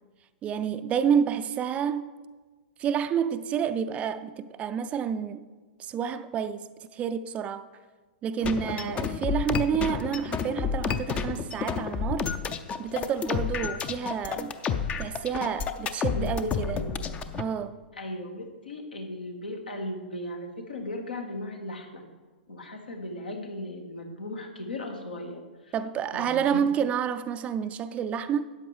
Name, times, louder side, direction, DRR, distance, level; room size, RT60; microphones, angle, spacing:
voice 1, 0.4-2.1 2.8-5.5 5.8-7.6 8.2-12.3 12.8-14.6 15.0-16.8 17.3-17.8 25.7-28.4, right 8 dB, 25° right, 0.4 m, -29 dB
sound 1, 8.4-17.4, left 6 dB, 25° left, 0.6 m, -30 dB
voice 2, 8.7-9.0 16.1-16.9 17.9-22.1 22.5-25.7 26.1-26.7, left 1 dB, 80° left, 1.6 m, -37 dB
13.0 x 8.9 x 3.3 m
figure-of-eight pair, 105°, 5 cm